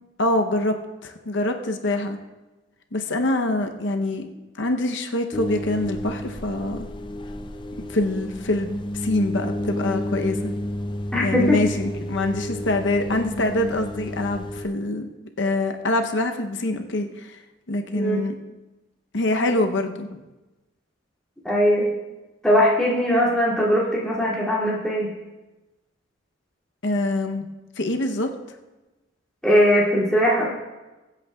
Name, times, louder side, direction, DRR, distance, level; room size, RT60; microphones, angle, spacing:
voice 1, 0.2-0.7 1.0-2.2 2.9-4.3 4.6-6.8 7.8-10.5 11.2-15.1 15.4-17.4 17.7-18.3 19.1-20.2 26.8-27.5 27.8-28.3, left 2 dB, 65° left, 5 dB, 0.7 m, -25 dB
sound 1, 5.3-14.7, left 1 dB, 25° left, 0.4 m, -31 dB
voice 2, 11.1-11.6 17.9-18.2 21.4-21.9 22.4-25.1 29.4-30.5, equal, 5° left, -7 dB, 2.3 m, -20 dB
22.0 x 8.3 x 2.3 m, 1.1 s
head